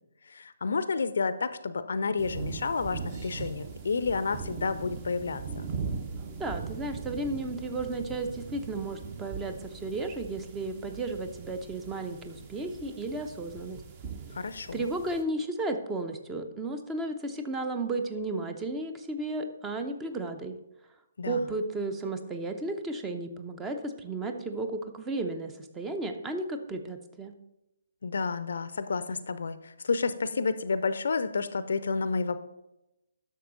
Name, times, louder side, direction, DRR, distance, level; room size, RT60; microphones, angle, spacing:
voice 1, 0.3-5.7 14.3-14.9 21.2-21.5 28.0-32.4, left 4 dB, 55° left, 13 dB, 0.6 m, -30 dB
sound 1, 2.2-15.2, right 5 dB, 30° right, 1.0 m, -40 dB
voice 2, 6.3-13.8 14.7-20.6 21.2-27.3, right 2 dB, 10° right, 7 dB, 0.7 m, -34 dB
11.0 x 6.7 x 3.9 m, 0.90 s
figure-of-eight pair, 135°, 0 cm